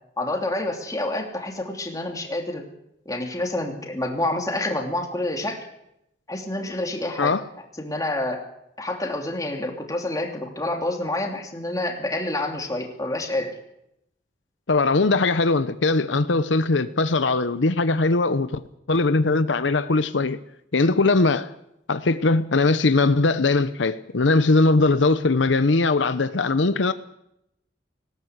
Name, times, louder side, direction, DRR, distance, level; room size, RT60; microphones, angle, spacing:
voice 1, 0.2-2.6 3.0-5.6 6.3-7.3 7.8-8.4 8.8-13.5, left 1 dB, 20° left, 2.9 m, -28 dB
voice 2, 14.7-18.6 18.9-20.4 20.7-21.5 21.9-26.9, left 3 dB, 85° left, 0.8 m, -20 dB
19.0 x 17.0 x 8.0 m
head